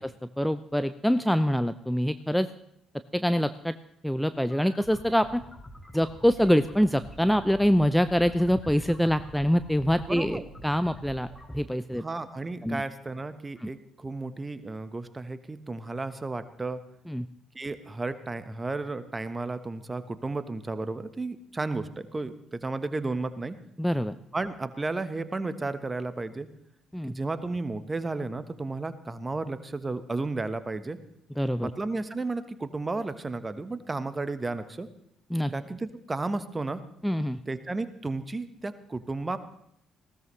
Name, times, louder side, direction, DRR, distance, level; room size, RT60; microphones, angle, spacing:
voice 1, 0.4-2.5 3.1-3.7 4.0-5.4 5.9-12.0 12.6-12.8 13.6-13.7 17.1-17.3 23.8-24.2 26.9-27.2 31.4-31.7 35.3-35.5 37.0-37.4, equal, ahead, 12 dB, 0.6 m, -25 dB
sound 1, 4.3-11.5, equal, 20° left, 4.4 m, -46 dB
voice 2, 10.1-10.5 12.0-16.8 17.5-23.6 24.3-26.5 27.1-31.0 31.6-34.9 35.5-36.8 37.5-39.4, right 3 dB, 25° right, 11 dB, 1.3 m, -33 dB
19.0 x 16.5 x 3.3 m, 0.72 s
hypercardioid pair, 45°, 0 cm